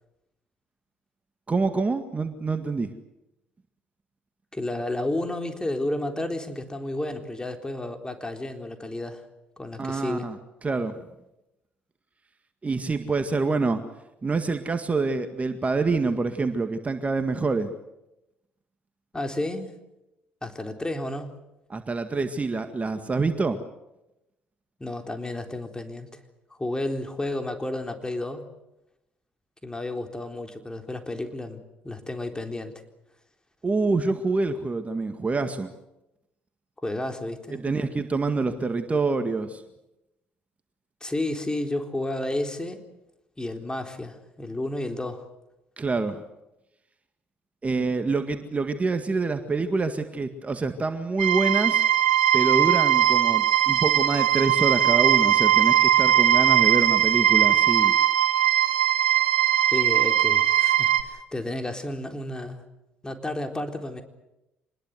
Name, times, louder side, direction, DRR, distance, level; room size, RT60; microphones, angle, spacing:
voice 1, 1.5-2.9 9.8-10.4 10.6-11.0 12.6-13.8 14.2-17.7 21.7-23.6 33.6-35.7 37.5-39.6 45.8-46.2 47.6-51.8 52.3-58.0, right 3 dB, 25° right, 8 dB, 1.9 m, -26 dB
voice 2, 4.5-9.2 9.6-10.3 19.1-19.7 20.4-21.3 24.8-26.1 26.6-28.4 29.6-32.7 36.8-37.7 41.0-42.8 43.4-45.3 59.7-62.6 63.0-64.0, left 1 dB, 15° left, 5 dB, 3.9 m, -31 dB
sound 1, 51.2-61.0, right 11 dB, 80° right, 2.0 m, -20 dB
26.0 x 20.5 x 8.0 m, 0.91 s
hypercardioid pair, 55°, 5 cm